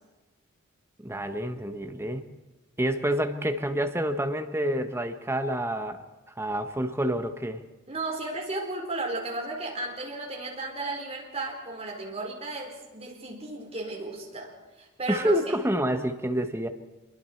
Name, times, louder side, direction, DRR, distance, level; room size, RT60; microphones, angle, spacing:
voice 1, 1.0-2.3 2.8-6.0 6.4-7.6 15.1-16.7, right 1 dB, 10° right, 7 dB, 1.1 m, -28 dB
voice 2, 7.9-15.4, right 2 dB, 30° right, 0 dB, 4.3 m, -34 dB
26.5 x 23.0 x 4.5 m, 1.1 s
head